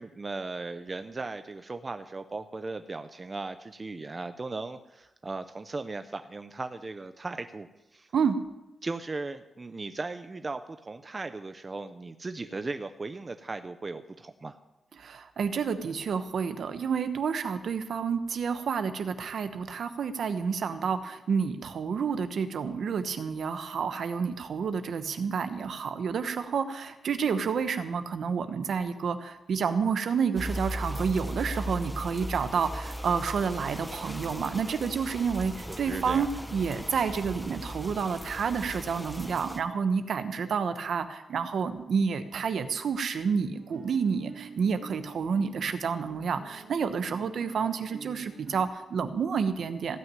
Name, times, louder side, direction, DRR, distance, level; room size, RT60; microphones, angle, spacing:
voice 1, 0.0-8.1 8.8-14.6 35.7-36.3, right 3 dB, 20° right, 9 dB, 0.5 m, -37 dB
voice 2, 15.0-50.0, right 6 dB, 55° right, 10 dB, 1.0 m, -29 dB
sound 1, 30.4-39.6, equal, 5° left, 0.8 m, -38 dB
Guitar, 43.5-48.6, right 5 dB, 40° right, 1.7 m, -47 dB
16.0 x 6.2 x 9.1 m, 0.99 s
wide cardioid pair, 170°, 0 cm